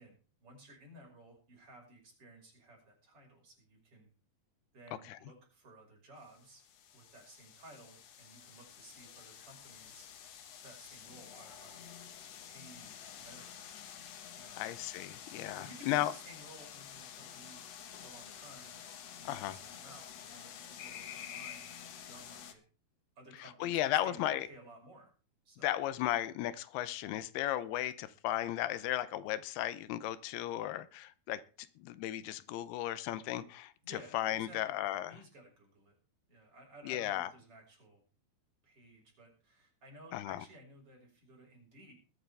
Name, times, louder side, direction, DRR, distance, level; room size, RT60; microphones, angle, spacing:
voice 1, 0.0-4.1 4.7-6.6 6.9-10.1 10.6-11.8 12.4-13.5 14.3-14.6 15.6-17.6 18.0-18.8 19.2-22.6 23.2-25.1 25.4-25.8 33.8-35.9 36.3-38.0 38.6-41.9, right 1 dB, 35° right, 6.3 m, -56 dB
sound 1, 6.2-22.5, left 8 dB, 60° left, 1.9 m, -50 dB
voice 2, 14.6-16.1 19.3-19.6 23.4-24.5 25.6-31.4 31.8-33.7 34.1-35.2 36.8-37.3 40.1-40.4, left 13 dB, 85° left, 2.7 m, -35 dB
21.0 x 9.4 x 3.4 m
omnidirectional pair, 4.4 m